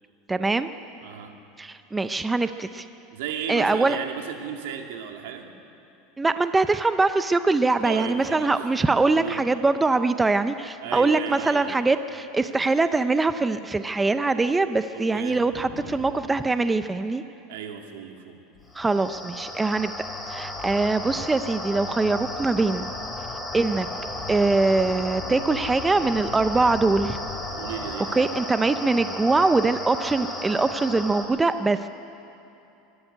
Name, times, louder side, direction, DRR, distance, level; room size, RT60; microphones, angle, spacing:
voice 1, 0.3-0.7 1.6-2.8 3.5-4.0 6.2-17.2 18.8-19.9 20.3-22.9 23.5-23.9 24.3-27.2 28.2-31.8, right 3 dB, 10° right, 10 dB, 0.5 m, -23 dB
voice 2, 1.0-1.4 3.1-5.5 7.8-8.6 9.1-9.4 10.8-11.8 14.9-15.4 17.5-18.4 27.5-28.4, right 8 dB, 85° right, 3 dB, 2.3 m, -35 dB
sound 1, 15.5-16.5 18.5-28.0, left 6 dB, 40° left, 2.3 m, -42 dB
sound 2, 18.7-31.3, left 1 dB, 5° left, 2.9 m, -34 dB
25.0 x 12.5 x 10.0 m, 2.8 s
supercardioid pair, 155°, 0 cm